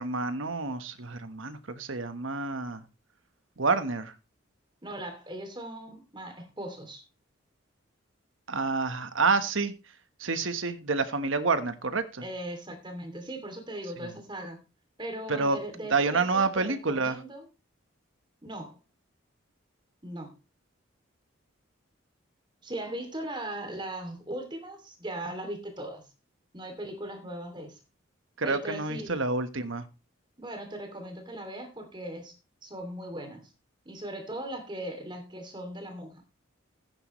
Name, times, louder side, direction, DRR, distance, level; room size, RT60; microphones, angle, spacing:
voice 1, 0.0-2.8 3.6-4.1 8.5-9.7 10.2-12.2 14.0-14.1 15.3-15.6 15.9-17.2 28.4-29.9, right 4 dB, 75° right, 10 dB, 1.3 m, -28 dB
voice 2, 4.8-7.0 12.2-14.6 15.0-17.4 18.4-18.8 20.0-20.3 22.6-26.1 26.5-27.8 28.4-29.1 30.4-33.5 33.8-36.2, right 1 dB, 20° right, 5 dB, 2.7 m, -39 dB
15.5 x 9.7 x 3.2 m, 0.29 s
head